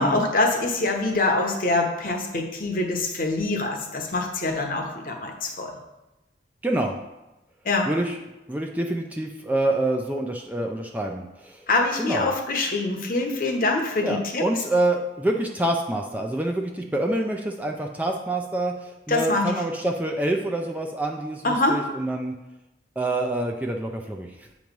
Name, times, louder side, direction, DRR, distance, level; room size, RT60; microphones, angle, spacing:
voice 1, 0.0-5.7 7.6-7.9 11.7-14.4 19.1-19.5 21.4-21.8, left 2 dB, 50° left, 2 dB, 0.9 m, -24 dB
voice 2, 6.6-7.0 7.9-8.2 8.5-11.6 12.0-12.3 14.0-22.3 23.0-24.5, right 1 dB, 10° right, 1 dB, 0.4 m, -26 dB
8.4 x 3.1 x 5.2 m, 0.99 s
head